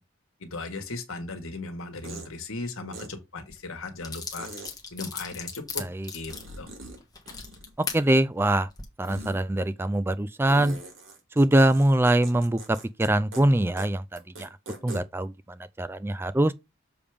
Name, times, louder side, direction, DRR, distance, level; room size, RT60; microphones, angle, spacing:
voice 1, 0.4-4.5 4.9-5.8 6.1-6.7, left 3 dB, 80° left, 1.6 m, -37 dB
sound 1, 2.0-2.3 2.9-3.1 4.4-4.7 6.3-7.0 7.2-8.2 9.0-9.4 10.5-13.1 13.3-13.4 13.8-13.9 14.2-15.0, right 1 dB, 70° right, 2.4 m, -41 dB
sound 2, 3.5-3.6 4.0-8.0 8.6-8.8, left 5 dB, 20° left, 1.4 m, -37 dB
voice 2, 7.9-8.7 9.0-10.8 11.4-14.5 14.8-16.5, right 1 dB, 10° right, 0.3 m, -23 dB
7.0 x 3.5 x 5.0 m
head